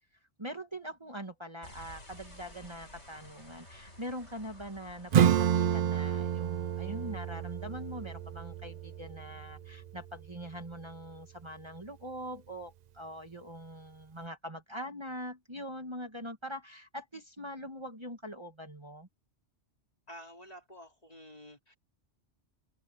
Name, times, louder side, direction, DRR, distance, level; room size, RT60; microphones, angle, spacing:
voice 1, 0.4-19.1, equal, 25° right, 2.0 m, -43 dB
sound 1, 1.6-11.0, left 1 dB, 85° left, 8.6 m, -55 dB
Acoustic guitar / Strum, 5.1-10.3, right 9 dB, 60° right, 0.4 m, -30 dB
voice 2, 20.1-21.8, equal, 35° left, 3.4 m, -50 dB
omnidirectional pair, 1.2 m